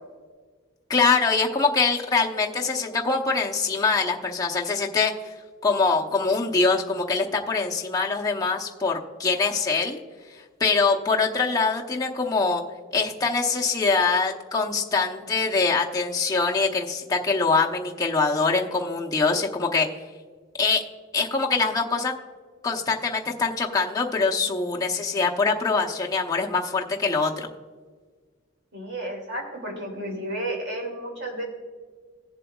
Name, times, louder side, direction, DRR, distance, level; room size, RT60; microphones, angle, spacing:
voice 1, 0.9-5.1 5.6-10.0 10.6-12.6 12.9-19.9 20.6-20.8 21.1-22.1 22.6-27.5, left 4 dB, 20° left, -1 dB, 0.8 m, -23 dB
voice 2, 28.7-31.5, right 1 dB, 60° right, 1 dB, 2.6 m, -32 dB
17.5 x 7.4 x 2.3 m, 1.5 s
head